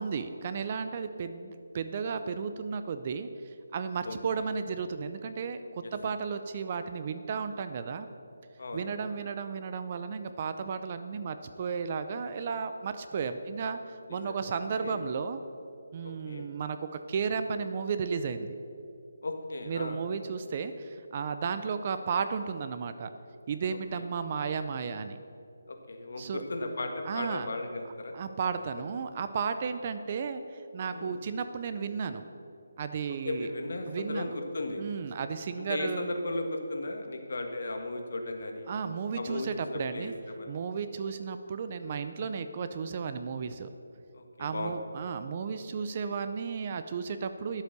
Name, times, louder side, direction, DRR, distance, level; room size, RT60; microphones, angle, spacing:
voice 1, 0.0-3.3 3.7-8.1 8.7-15.4 15.9-16.8 17.1-18.5 19.7-23.1 23.5-25.2 26.2-26.4 27.1-27.5 28.1-32.2 32.8-33.5 33.9-34.3 34.8-36.1 38.7-40.1 40.5-43.7 44.4-47.6, right 6 dB, 30° right, 10 dB, 0.5 m, -34 dB
voice 2, 4.0-4.5 5.8-5.9 8.6-8.9 14.1-14.5 14.8-15.0 16.0-16.4 19.2-20.0 23.7-24.0 25.7-28.1 30.9-31.1 33.1-34.8 35.7-38.7 39.1-40.6 44.1-44.8, left 2 dB, 60° left, 4 dB, 1.6 m, -36 dB
11.5 x 8.1 x 6.8 m, 2.7 s
hypercardioid pair, 175°, 0 cm